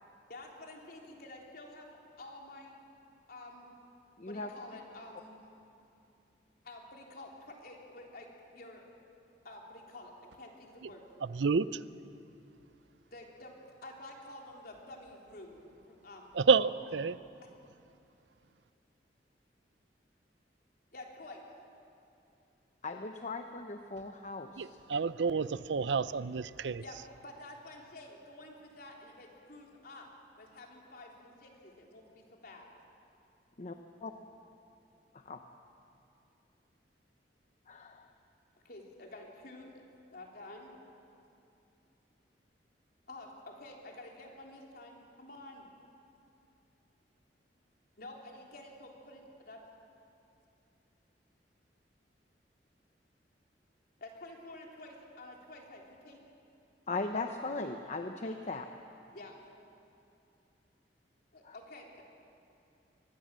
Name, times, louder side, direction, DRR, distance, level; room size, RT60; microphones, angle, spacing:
voice 1, 0.3-1.9 2.2-2.8 3.3-3.7 4.3-5.4 6.6-8.8 9.4-11.0 13.1-16.3 16.6-16.8 20.9-21.4 26.8-30.1 30.4-32.7 38.6-39.7 40.1-40.8 43.1-45.7 48.0-49.6 54.0-56.2 59.1-59.4 61.3-62.0, left 2 dB, 60° left, 0 dB, 3.6 m, -50 dB
voice 2, 4.2-4.5 22.8-24.7 33.6-33.7 34.0-34.1 35.3-35.4 37.7-38.1 56.9-58.7 61.4-61.5, left 3 dB, 40° left, 5 dB, 0.9 m, -38 dB
voice 3, 11.2-11.8 16.3-17.1 24.6-26.8, right 5 dB, 85° right, 16 dB, 0.6 m, -29 dB
24.5 x 20.0 x 7.6 m, 2.7 s
head